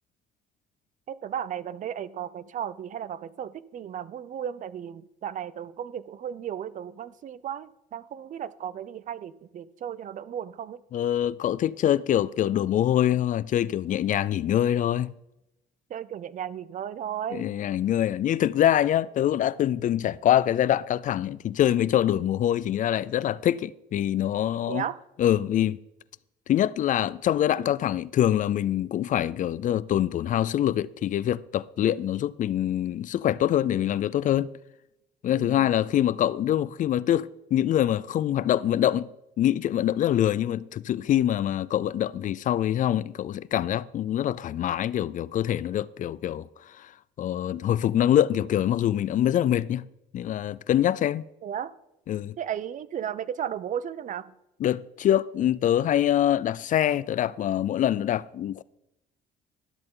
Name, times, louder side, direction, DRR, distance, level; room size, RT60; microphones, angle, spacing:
voice 1, 1.1-10.8 15.9-17.5 24.7-25.0 35.3-35.7 51.4-51.7 52.4-54.3, right 9 dB, 50° right, 0.6 m, -35 dB
voice 2, 10.9-15.1 17.3-24.8 25.2-25.8 26.5-34.5 35.2-39.1 39.4-46.9 47.2-49.9 50.1-51.2 52.1-52.4 54.6-58.6, left 11 dB, 50° left, 0.4 m, -24 dB
12.5 x 12.0 x 3.8 m
cardioid pair, 110°, 17 cm